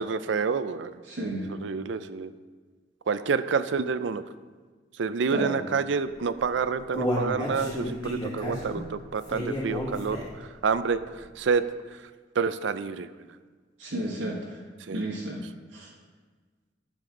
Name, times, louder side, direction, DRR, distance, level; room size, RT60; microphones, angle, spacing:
voice 1, 0.0-1.0 1.5-2.3 3.1-4.2 5.0-11.7 11.9-12.0 12.4-13.1 14.9-15.0, right 5 dB, 65° right, 13 dB, 0.4 m, -28 dB
voice 2, 1.1-1.5 5.3-5.6 13.8-14.6 14.9-15.4 15.7-15.9, right 1 dB, 90° right, -6 dB, 1.5 m, -32 dB
Human voice, 6.3-10.5 10.9-11.0 11.5-11.6, equal, 25° left, 2.0 m, -31 dB
11.5 x 6.9 x 3.8 m, 1.5 s
head